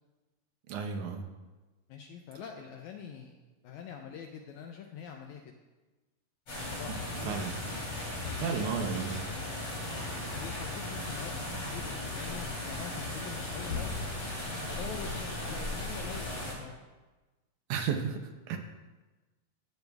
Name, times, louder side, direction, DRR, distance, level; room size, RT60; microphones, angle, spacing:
voice 1, 0.7-1.2 6.9-7.0 7.3-7.5 8.0-9.2 17.7-18.6, right 6 dB, 75° right, 4 dB, 2.0 m, -33 dB
voice 2, 1.9-5.5 6.7-7.2 8.2-8.9 9.9-10.1 10.4-13.9 14.6-16.7, left 7 dB, 85° left, 3 dB, 1.7 m, -45 dB
sound 1, 6.5-16.5, left 2 dB, 45° left, 4.0 m, -36 dB
12.0 x 7.9 x 2.3 m, 1.2 s
omnidirectional pair, 3.9 m